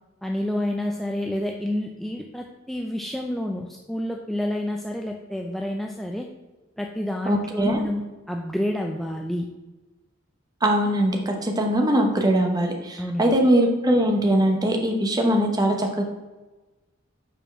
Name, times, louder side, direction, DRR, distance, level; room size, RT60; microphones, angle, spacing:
voice 1, 0.2-6.3 6.8-9.5 13.0-13.4, left 1 dB, ahead, 1 dB, 0.3 m, -29 dB
voice 2, 7.3-7.8 10.6-16.0, right 1 dB, 20° right, 2 dB, 0.9 m, -21 dB
5.4 x 4.4 x 6.0 m, 1.2 s
head